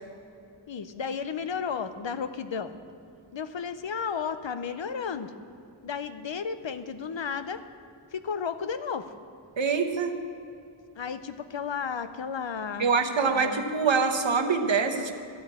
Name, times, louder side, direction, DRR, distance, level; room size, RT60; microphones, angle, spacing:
voice 1, 0.7-2.8 3.3-5.3 5.8-7.6 8.1-9.1 10.9-12.9 13.3-13.6, left 6 dB, 65° left, 11 dB, 0.7 m, -33 dB
voice 2, 9.6-10.1 12.8-15.1, right 5 dB, 65° right, 4 dB, 1.0 m, -25 dB
12.5 x 5.5 x 8.6 m, 2.6 s
wide cardioid pair, 50°, 48 cm